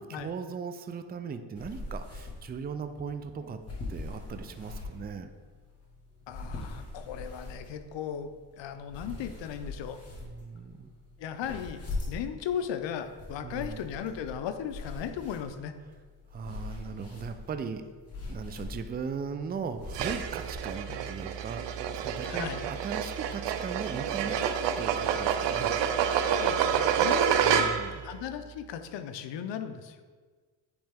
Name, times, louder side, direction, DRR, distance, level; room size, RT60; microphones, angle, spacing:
voice 1, 0.0-3.6 3.9-5.3 10.2-10.9 13.4-13.9 16.3-17.9 18.3-22.5 22.8-25.7 27.4-28.1, right 6 dB, 25° right, 9 dB, 0.4 m, -38 dB
sound 1, 1.6-20.6, left 2 dB, 35° left, 1.4 m, -42 dB
voice 2, 6.3-10.0 11.2-15.7 20.9-21.0 22.2-22.7 26.4-27.7 28.0-30.0, left 8 dB, 75° left, 9 dB, 0.6 m, -37 dB
sound 2, 19.9-28.0, right 8 dB, 70° right, 0.6 m, -28 dB
8.8 x 3.2 x 3.5 m, 1.5 s
cardioid pair, 85°, 44 cm